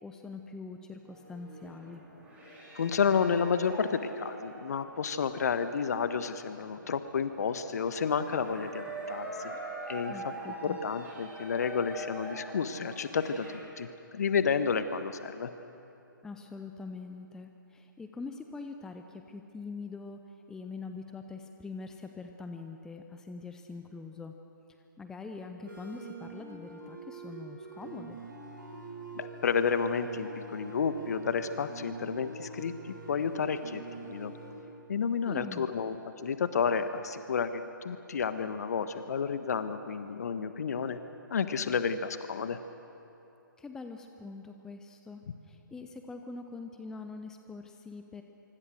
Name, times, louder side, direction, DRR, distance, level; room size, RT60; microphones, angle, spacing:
voice 1, 0.0-2.0 10.1-10.8 16.2-24.3 25.0-28.2 35.3-35.7 43.6-48.2, left 4 dB, 5° left, 6 dB, 0.7 m, -43 dB
sound 1, 1.0-13.6, right 1 dB, 10° right, 7.3 m, -44 dB
voice 2, 2.7-9.5 9.9-10.1 10.5-15.5 29.1-34.3 34.9-36.0 36.2-41.0 41.3-42.6, left 6 dB, 50° left, 10 dB, 1.4 m, -31 dB
sound 2, 25.6-34.5, right 3 dB, 65° right, 6.7 m, -45 dB
25.5 x 24.5 x 6.5 m, 2.8 s
figure-of-eight pair, 135°, 11 cm